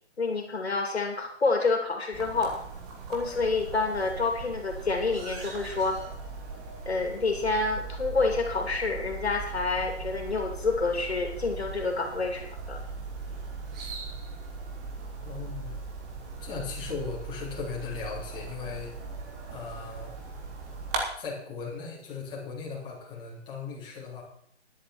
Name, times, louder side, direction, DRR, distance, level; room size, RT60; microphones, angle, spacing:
voice 1, 0.2-2.6 3.1-6.0 6.8-12.8, left 3 dB, 65° left, 3 dB, 3.0 m, -28 dB
sound 1, 2.1-21.0, right 4 dB, 5° right, 0.5 m, -39 dB
voice 2, 15.2-15.8 16.4-18.9 19.5-20.1 21.2-24.2, left 5 dB, 15° left, -5 dB, 3.6 m, -37 dB
14.0 x 11.0 x 4.4 m, 0.64 s
figure-of-eight pair, 140°, 34 cm